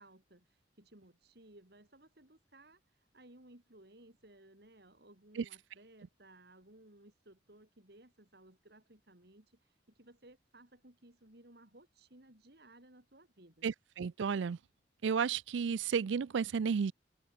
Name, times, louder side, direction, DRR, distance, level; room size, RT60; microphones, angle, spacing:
voice 1, 0.0-13.7, right 1 dB, 60° right, 3.4 m, -60 dB
voice 2, 13.6-14.6 15.0-16.9, right 6 dB, 85° right, 0.4 m, -32 dB
open air
head